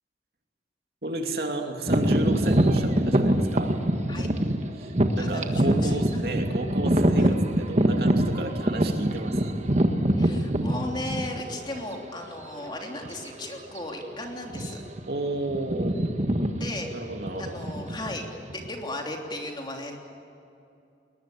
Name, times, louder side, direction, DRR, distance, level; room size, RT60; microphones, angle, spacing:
voice 1, 1.0-3.7 4.8-7.4 7.7-9.6 15.1-16.0 16.9-17.6, right 2 dB, 60° right, 3 dB, 2.8 m, -32 dB
sound 1, 1.9-11.6 12.3-12.4 13.0-13.3 13.5-13.8 14.4-15.0 15.3-18.7, right 1 dB, 40° right, 1.6 m, -24 dB
voice 2, 5.2-6.0 7.2-7.3 10.2-14.8 16.6-16.9 17.4-20.0, left 1 dB, 25° left, 1 dB, 3.3 m, -36 dB
21.5 x 20.5 x 8.6 m, 2.6 s
head